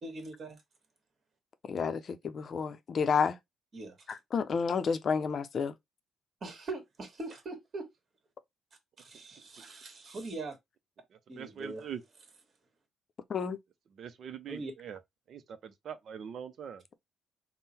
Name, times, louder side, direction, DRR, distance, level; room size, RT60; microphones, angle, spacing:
voice 1, 0.0-0.6 3.7-4.0 6.4-7.9 9.0-10.6 11.3-11.9 14.5-14.7, right 2 dB, 45° right, 1.4 m, -41 dB
voice 2, 1.7-3.4 4.1-5.7 13.3-13.6, left 6 dB, 50° left, 0.5 m, -30 dB
voice 3, 11.4-12.0 14.0-15.0 15.3-16.8, right 8 dB, 60° right, 0.6 m, -42 dB
3.7 x 2.1 x 4.1 m
cardioid pair, 90°, 0 cm